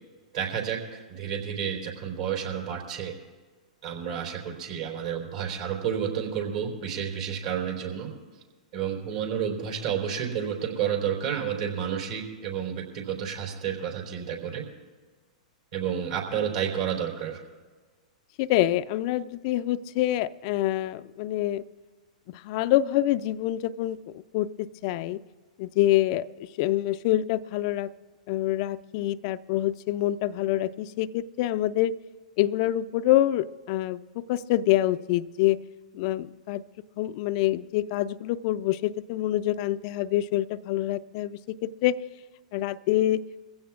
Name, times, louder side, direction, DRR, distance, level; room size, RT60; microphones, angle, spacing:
voice 1, 0.3-3.1 3.8-8.1 8.7-14.6 15.7-17.4, right 8 dB, 65° right, -1 dB, 3.7 m, -30 dB
voice 2, 18.4-21.6 22.3-25.2 25.6-26.3 26.6-27.9 28.3-31.9 32.4-35.6 35.9-36.6 37.0-42.0 42.5-43.2, left 14 dB, 50° left, 13 dB, 0.4 m, -26 dB
23.0 x 16.0 x 2.4 m, 1.4 s
hypercardioid pair, 110°, 4 cm